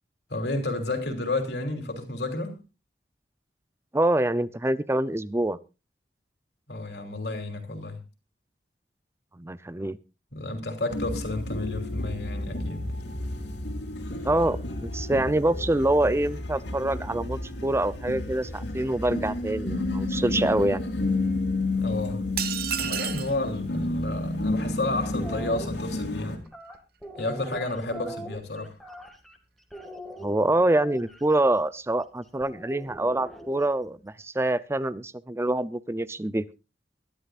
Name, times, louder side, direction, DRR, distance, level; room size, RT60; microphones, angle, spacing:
voice 1, 0.3-2.6 6.7-8.0 10.3-12.9 21.7-22.3 22.7-26.4 27.2-28.8, left 2 dB, 65° left, 3.2 m, -31 dB
voice 2, 3.9-5.6 9.4-10.0 14.2-20.8 30.2-36.4, right 1 dB, 15° right, 0.5 m, -25 dB
sound 1, 10.9-26.4, left 2 dB, 85° left, 3.4 m, -31 dB
sound 2, 22.4-23.4, right 10 dB, 60° right, 1.1 m, -30 dB
sound 3, 25.1-25.7 26.5-29.4 29.7-31.2 32.4-33.8, right 1 dB, ahead, 2.0 m, -42 dB
23.0 x 11.5 x 2.5 m
head